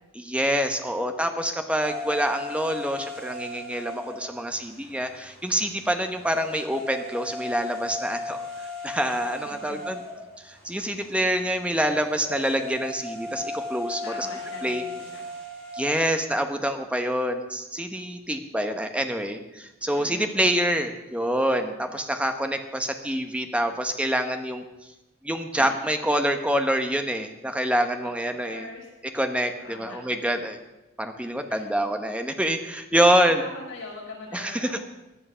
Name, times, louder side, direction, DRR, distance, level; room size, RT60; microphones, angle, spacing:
voice 1, 0.1-8.4 8.8-10.0 10.4-14.3 14.6-14.8 15.7-24.6 25.2-28.7 29.1-30.6 31.0-33.4 34.3-34.8, equal, 5° right, 6 dB, 1.0 m, -26 dB
sound 1, 1.8-16.2, left 2 dB, 25° right, 5.1 m, -37 dB
voice 2, 9.4-9.8 14.0-15.2 19.8-20.6 26.2-26.3 28.0-28.9 29.6-30.0 31.5-31.6 33.2-34.7, left 2 dB, 75° left, -2 dB, 5.8 m, -41 dB
17.5 x 11.0 x 5.6 m, 1.0 s
head